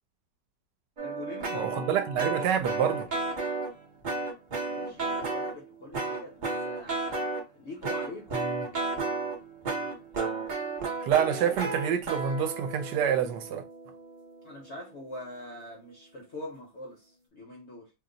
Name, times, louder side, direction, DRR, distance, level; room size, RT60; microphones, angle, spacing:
voice 1, 1.0-2.0 4.7-8.4 14.4-17.9, left 1 dB, 60° left, 0.7 m, -43 dB
sound 1, 1.0-3.8 4.0-5.5 5.9-7.4 7.8-14.8, right 3 dB, 50° right, 0.5 m, -33 dB
voice 2, 1.5-3.1 11.1-13.6, right 8 dB, 75° right, 1.2 m, -27 dB
2.9 x 2.0 x 3.7 m
omnidirectional pair, 1.9 m